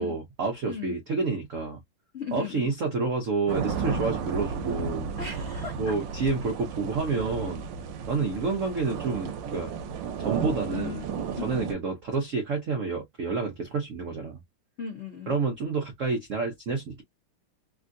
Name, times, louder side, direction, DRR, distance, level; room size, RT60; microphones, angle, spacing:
voice 1, 0.0-1.8 2.3-5.1 5.8-7.6 8.1-9.7 10.2-11.1 11.4-14.4 15.3-17.0, right 4 dB, 85° right, 0.6 m, -29 dB
voice 2, 2.1-2.7 5.2-5.9 10.7-11.1 11.4-11.7 14.8-15.3, left 6 dB, 80° left, 0.6 m, -37 dB
sound 1, 3.5-11.7, right 6 dB, 70° right, 1.2 m, -33 dB
3.5 x 2.4 x 2.5 m
omnidirectional pair, 2.4 m